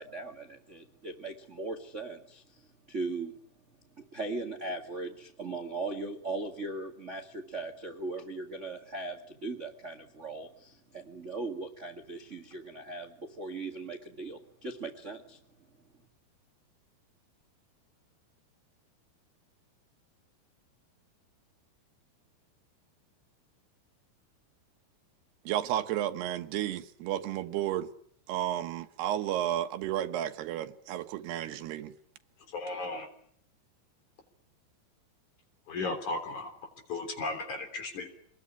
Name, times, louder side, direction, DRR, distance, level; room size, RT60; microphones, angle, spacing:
voice 1, 0.0-3.4 4.0-15.4, right 3 dB, 30° right, 1.4 m, -39 dB
voice 2, 25.4-27.9 28.3-32.0, right 12 dB, 85° right, 3.3 m, -32 dB
voice 3, 32.5-33.1 35.7-36.5 36.9-38.1, left 3 dB, 50° left, 4.7 m, -35 dB
26.5 x 20.5 x 9.9 m
omnidirectional pair, 4.6 m